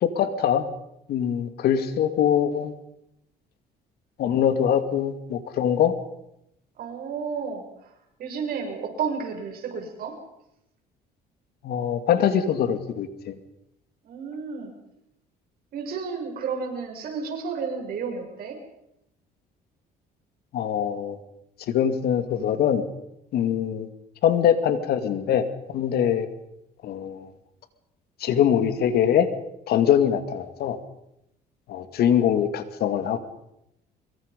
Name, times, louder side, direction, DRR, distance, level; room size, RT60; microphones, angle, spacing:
voice 1, 0.0-0.7 1.1-2.7 4.2-5.9 11.6-13.3 20.5-21.2 21.7-22.8 23.3-23.9 24.2-26.3 26.8-27.3 28.2-29.3 29.7-30.8 31.7-33.2, left 9 dB, 70° left, 10 dB, 2.3 m, -23 dB
voice 2, 6.8-7.6 8.2-10.1 14.0-14.7 15.7-18.6, right 5 dB, 60° right, 2 dB, 7.0 m, -31 dB
25.0 x 23.5 x 5.4 m, 0.82 s
cardioid pair, 110°, 17 cm